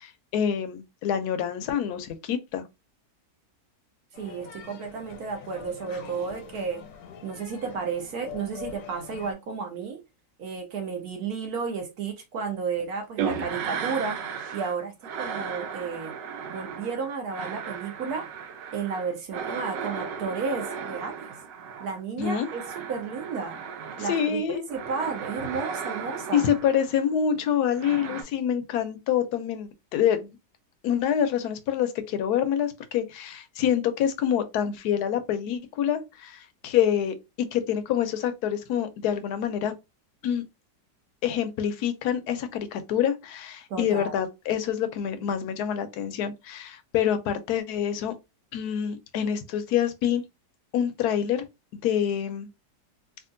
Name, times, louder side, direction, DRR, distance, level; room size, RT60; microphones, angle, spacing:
voice 1, 0.0-2.6 22.2-22.5 24.0-24.7 26.3-30.4 30.8-39.7 40.2-40.4 41.2-48.1 48.5-50.2 50.7-51.4 51.8-52.5, left 9 dB, 70° left, 1.0 m, -26 dB
sound 1, 4.1-9.3, left 8 dB, 85° left, 1.4 m, -44 dB
voice 2, 4.2-6.8 7.2-10.0 10.4-14.2 14.5-16.1 16.5-18.3 18.7-21.2 21.8-23.6 24.0-26.5 43.7-44.1, right 5 dB, 65° right, 1.1 m, -32 dB
sound 2, 13.2-14.8 15.0-24.3 24.7-27.0 27.7-28.2, right 6 dB, 85° right, 1.3 m, -35 dB
3.5 x 2.4 x 2.5 m
omnidirectional pair, 1.9 m